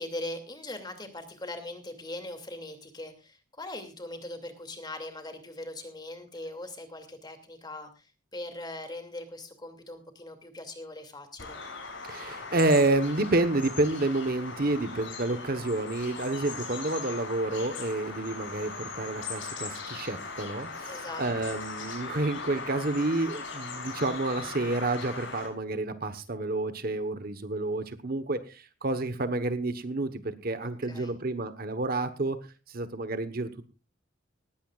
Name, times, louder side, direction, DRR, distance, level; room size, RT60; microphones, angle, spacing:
voice 1, 0.0-11.6 20.9-21.2 30.6-31.1, left 1 dB, 20° left, 6 dB, 2.6 m, -41 dB
Bird vocalization bird call bird song, 11.4-25.5, left 4 dB, 65° left, 6.3 m, -39 dB
voice 2, 12.0-32.4 32.7-33.7, right 2 dB, 45° right, 11 dB, 1.2 m, -29 dB
19.5 x 15.5 x 2.5 m, 0.31 s
head